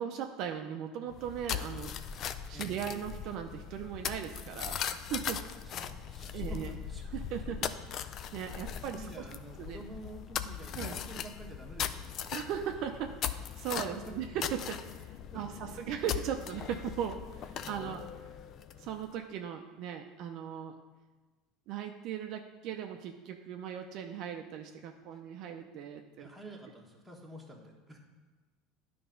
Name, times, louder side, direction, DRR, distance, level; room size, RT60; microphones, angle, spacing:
voice 1, 0.0-2.2 2.5-5.4 6.3-6.7 7.1-7.7 8.3-9.2 9.6-9.8 10.8-10.9 12.3-18.0 18.8-20.8 21.7-26.3, right 9 dB, 60° right, 4 dB, 0.5 m, -38 dB
sound 1, 1.1-19.0, left 9 dB, 45° left, 0.4 m, -39 dB
voice 2, 2.5-2.8 5.6-7.0 7.4-7.9 8.9-12.1 13.9-14.1 15.3-15.4 15.8-16.2 17.6-18.1 25.1-25.2 26.1-28.0, right 1 dB, 5° right, -1 dB, 1.3 m, -49 dB
10.0 x 3.4 x 5.2 m, 1.2 s
supercardioid pair, 120°, 0 cm